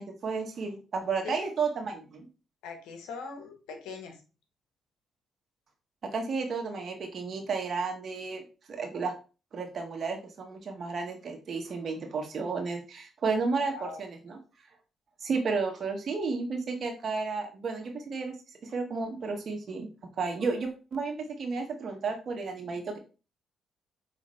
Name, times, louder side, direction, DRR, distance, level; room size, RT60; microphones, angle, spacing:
voice 1, 0.0-2.3 6.0-8.4 8.7-9.1 9.5-14.4 15.2-18.3 18.6-19.9 20.2-23.0, right 4 dB, 55° right, 3 dB, 1.4 m, -32 dB
voice 2, 2.6-4.2 13.6-14.0, left 5 dB, 85° left, 5 dB, 0.9 m, -41 dB
5.2 x 3.1 x 3.2 m, 0.33 s
supercardioid pair, 50°, 0 cm